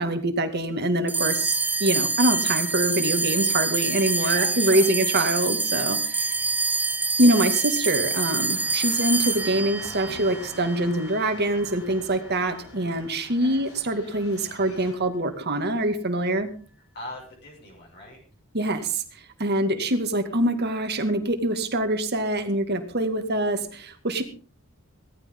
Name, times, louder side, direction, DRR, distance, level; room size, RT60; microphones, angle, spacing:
voice 1, 0.0-6.4 7.2-16.5 18.5-19.0 19.4-24.2, right 1 dB, 50° right, 7 dB, 2.2 m, -24 dB
sound 1, 1.1-11.7, right 3 dB, 10° right, 0.8 m, -26 dB
voice 2, 3.7-4.9 6.2-6.6 13.4-13.6 16.9-18.2, left 1 dB, 50° left, -2 dB, 6.9 m, -42 dB
sound 2, 8.5-14.9, left 1 dB, 70° left, 7.2 m, -45 dB
18.0 x 14.0 x 3.9 m, 0.39 s
head